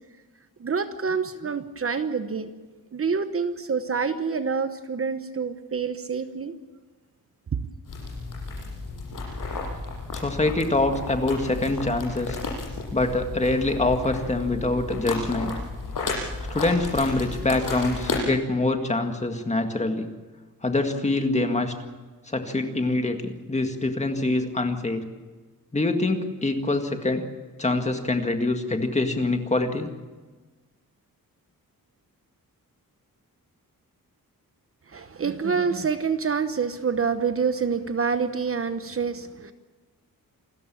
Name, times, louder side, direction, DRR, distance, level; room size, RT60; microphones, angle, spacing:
voice 1, 0.6-2.5 2.9-6.5 34.9-39.5, right 5 dB, 40° right, 9 dB, 1.1 m, -27 dB
sound 1, 7.9-18.2, left 3 dB, 65° left, 7.5 m, -33 dB
voice 2, 10.1-12.4 12.9-15.5 16.5-20.1 20.6-21.7 22.3-25.1 25.7-27.2 27.6-29.9, left 2 dB, 20° left, 5 dB, 1.9 m, -25 dB
28.0 x 14.0 x 8.4 m, 1.3 s
wide cardioid pair, 160°, 35 cm